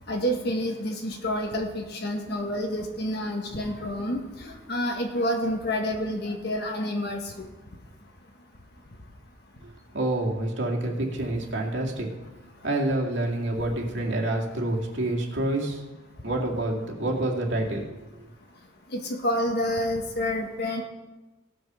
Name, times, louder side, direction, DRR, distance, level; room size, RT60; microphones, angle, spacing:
voice 1, 0.1-7.5 18.9-20.8, equal, 50° left, 2 dB, 1.5 m, -28 dB
voice 2, 9.9-12.1 12.6-15.8 16.2-17.8, right 1 dB, 60° right, -1 dB, 2.2 m, -27 dB
17.0 x 6.2 x 6.2 m, 1.1 s
head